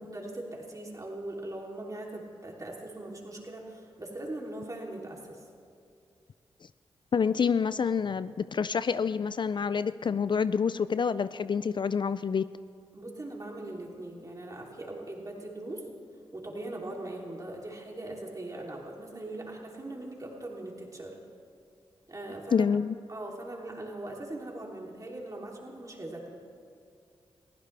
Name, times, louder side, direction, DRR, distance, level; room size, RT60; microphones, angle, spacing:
voice 1, 0.0-5.4 12.9-15.9 16.3-21.2 22.1-22.7 23.1-26.4, right 1 dB, 30° right, -1 dB, 3.2 m, -40 dB
voice 2, 7.1-12.5 22.5-23.0, left 6 dB, 45° left, 15 dB, 0.4 m, -27 dB
22.0 x 15.5 x 3.4 m, 2.4 s
cardioid pair, 50°, 11 cm